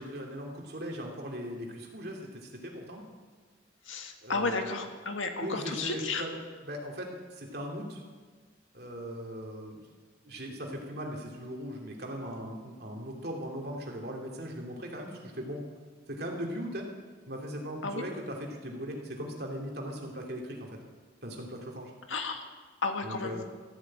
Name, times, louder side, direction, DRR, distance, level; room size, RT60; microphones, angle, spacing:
voice 1, 0.0-3.0 4.2-4.7 5.4-6.3 6.6-8.0 8.7-9.8 10.3-15.6 16.1-16.9 17.3-20.7 21.2-21.9 23.0-23.4, equal, 55° right, 0 dB, 2.9 m, -39 dB
voice 2, 3.9-6.2 17.8-18.0 22.1-22.4 22.8-23.4, left 3 dB, 90° left, 5 dB, 1.7 m, -33 dB
14.0 x 11.5 x 8.8 m, 1.5 s
head